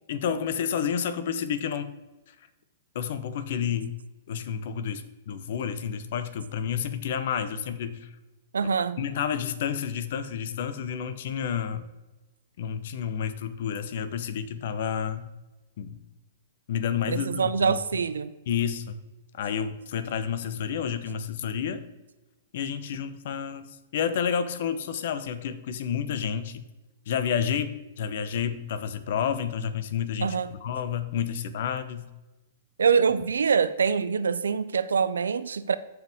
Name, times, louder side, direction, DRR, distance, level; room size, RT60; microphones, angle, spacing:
voice 1, 0.1-2.0 2.9-3.9 4.3-8.1 8.6-8.7 9.0-11.8 12.6-15.3 15.8-16.0 16.7-17.8 18.5-19.0 19.3-21.8 22.5-26.6 27.1-32.1, left 8 dB, 65° left, 12 dB, 0.8 m, -30 dB
voice 2, 8.5-9.0 17.1-18.3 30.2-30.6 32.8-35.8, right 6 dB, 90° right, 14 dB, 0.5 m, -24 dB
14.0 x 4.7 x 3.5 m, 1.1 s
hypercardioid pair, 125°, 0 cm